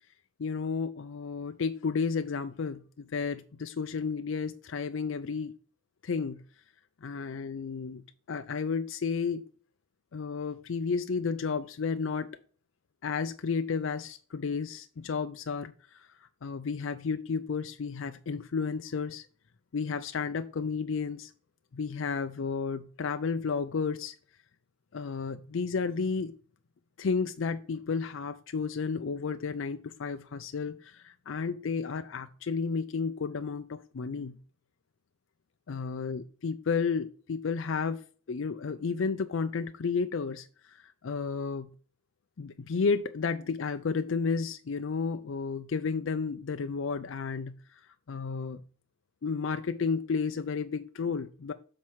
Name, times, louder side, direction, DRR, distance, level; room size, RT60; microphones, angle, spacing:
voice 1, 0.4-5.5 6.0-6.4 7.0-9.4 10.1-12.4 13.0-16.1 16.4-19.3 19.7-21.3 21.7-24.2 24.9-26.4 27.0-34.4 35.7-41.7 42.4-47.8 48.1-48.6 49.2-51.5, left 5 dB, 75° left, 8 dB, 0.5 m, -32 dB
7.2 x 4.4 x 4.6 m, 0.41 s
head